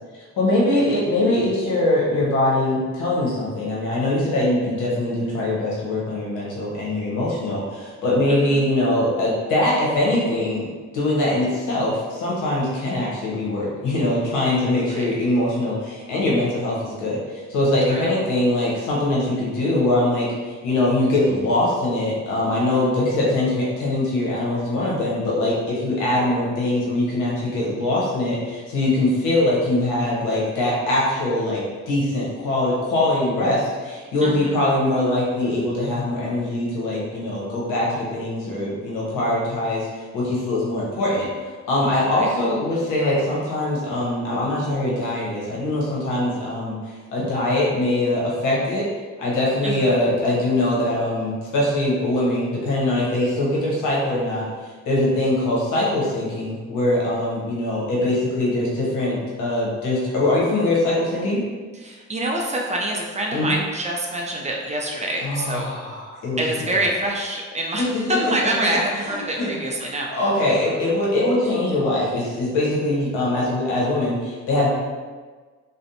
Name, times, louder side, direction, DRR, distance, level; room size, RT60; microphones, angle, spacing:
voice 1, 0.4-10.7 10.9-39.9 40.1-41.3 41.7-48.8 49.2-54.4 54.8-61.4 63.3-63.6 65.2-66.4 67.8-68.3 69.1-69.5 70.1-74.7, left 1 dB, 85° left, -5 dB, 0.9 m, -22 dB
voice 2, 8.3-8.6 14.9-15.1 17.9-18.3 34.2-34.6 42.0-42.3 49.6-49.9 61.7-65.7 66.4-70.1, right 1 dB, 25° right, -1 dB, 0.3 m, -26 dB
2.5 x 2.0 x 2.7 m, 1.4 s
cardioid pair, 90°, 30 cm